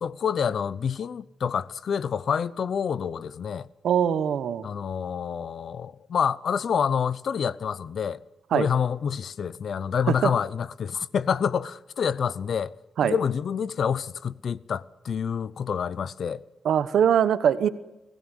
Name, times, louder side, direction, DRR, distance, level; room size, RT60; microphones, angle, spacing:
voice 1, 0.0-3.7 4.6-8.2 8.5-12.7 13.0-16.4, left 7 dB, 70° left, 0.7 m, -27 dB
voice 2, 3.8-4.7 8.5-8.7 10.1-10.3 13.0-13.1 16.6-17.7, right 8 dB, 85° right, 1.1 m, -22 dB
21.5 x 16.0 x 10.0 m
cardioid pair, 60°, 0 cm